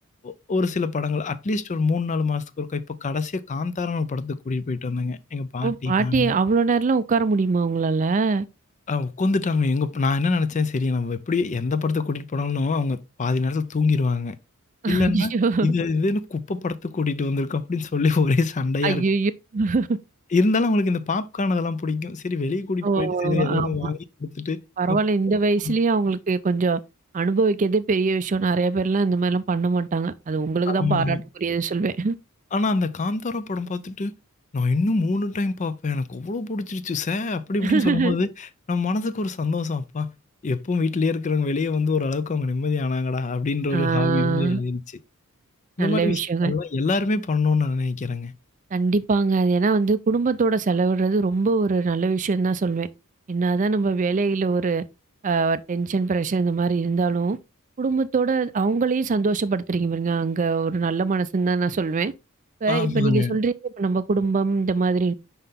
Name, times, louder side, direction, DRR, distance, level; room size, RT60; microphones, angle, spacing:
voice 1, 0.2-6.4 8.9-14.4 14.9-15.3 15.6-19.1 20.3-24.6 24.9-25.0 25.6-25.7 30.7-31.2 32.5-34.1 34.5-40.1 40.4-44.8 45.8-48.3 62.7-63.4, left 3 dB, 35° left, 0.5 m, -25 dB
voice 2, 5.6-8.4 14.8-15.7 18.8-20.0 22.8-23.9 24.8-26.8 27.1-32.1 37.6-38.2 43.7-44.6 45.8-46.5 48.7-52.9 53.3-54.8 55.2-57.4 57.8-62.1 62.6-65.1, right 4 dB, 35° right, 0.4 m, -22 dB
5.8 x 5.4 x 3.6 m
head